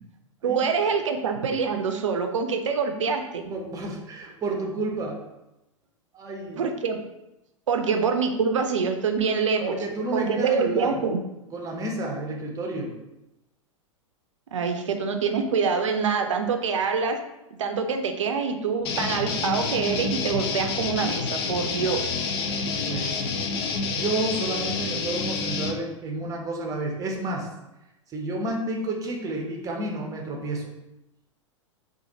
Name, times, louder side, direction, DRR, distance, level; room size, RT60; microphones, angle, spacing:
voice 1, 0.4-3.5 6.6-7.0 7.7-9.8 10.1-11.2 14.5-17.2 17.6-22.1, right 5 dB, 65° right, 5 dB, 0.5 m, -25 dB
voice 2, 3.5-5.2 6.1-6.6 9.6-11.0 11.5-13.0 22.8-23.2 23.9-27.5 28.1-30.7, right 2 dB, 20° right, 1 dB, 0.7 m, -30 dB
sound 1, 18.8-25.7, left 4 dB, 50° left, 0.5 m, -28 dB
4.1 x 2.4 x 2.7 m, 0.93 s
figure-of-eight pair, 95°, 17 cm